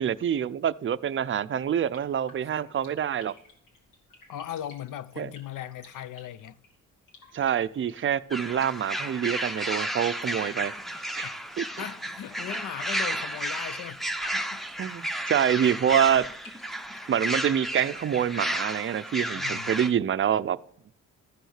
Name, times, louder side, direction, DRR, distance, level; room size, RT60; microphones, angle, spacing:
voice 1, 0.0-3.3 5.2-5.3 7.3-10.7 11.2-11.3 11.6-11.7 14.8-16.3 17.1-20.6, right 9 dB, 40° right, 0.5 m, -26 dB
sound 1, 1.7-19.3, left 1 dB, 85° left, 3.3 m, -53 dB
voice 2, 4.3-6.6 11.2-11.4 11.8-14.0 14.3-14.6 19.4-19.7, left 11 dB, 70° left, 0.7 m, -38 dB
sound 2, 8.3-19.9, right 1 dB, ahead, 0.7 m, -32 dB
13.5 x 6.3 x 6.5 m
cardioid pair, 90°, 33 cm